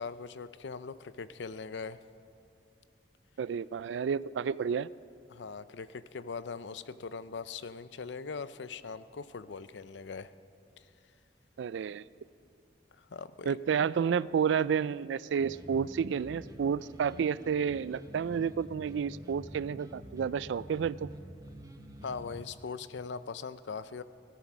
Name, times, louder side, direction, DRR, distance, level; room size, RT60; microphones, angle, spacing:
voice 1, 0.0-2.0 5.3-10.3 13.0-13.6 22.0-24.0, left 5 dB, 80° left, 14 dB, 0.5 m, -41 dB
voice 2, 3.4-4.9 11.6-12.1 13.5-21.1, right 7 dB, 85° right, 19 dB, 0.3 m, -30 dB
sound 1, 15.4-22.4, equal, 20° right, 0.9 m, -48 dB
16.5 x 13.0 x 6.1 m, 2.5 s
head